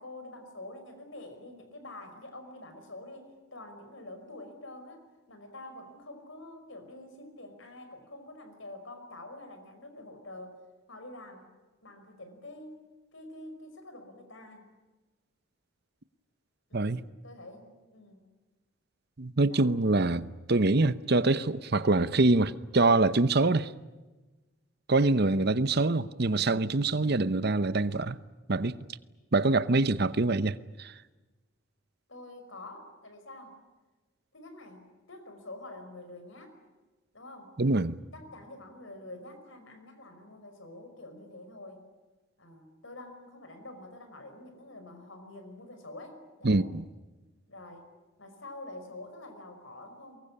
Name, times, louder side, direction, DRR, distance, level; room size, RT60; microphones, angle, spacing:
voice 1, 0.0-10.6 10.9-11.5 11.8-12.8 13.1-14.7 16.7-18.2 19.4-19.7 32.1-33.5 34.3-36.5 37.1-37.6 38.1-41.8 42.4-46.7 47.5-47.9 48.2-50.2, left 2 dB, 60° left, 5.4 m, -47 dB
voice 2, 19.2-23.7 24.9-28.2 28.5-28.8 29.3-30.9 37.6-38.0 46.4-46.8, right 2 dB, 50° right, 0.8 m, -25 dB
24.0 x 22.5 x 9.9 m
head